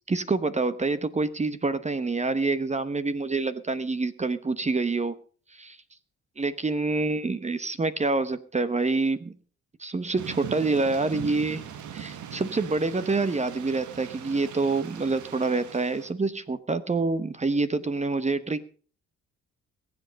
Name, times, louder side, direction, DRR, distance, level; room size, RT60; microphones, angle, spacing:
voice 1, 0.1-5.1 5.5-5.8 6.4-9.4 9.8-11.6 11.9-18.7, right 3 dB, 25° right, 13 dB, 1.0 m, -27 dB
Thunder / Rain, 10.2-16.1, right 9 dB, 75° right, 1.6 m, -40 dB
21.5 x 8.0 x 5.2 m, 0.42 s
cardioid pair, 90°, 30 cm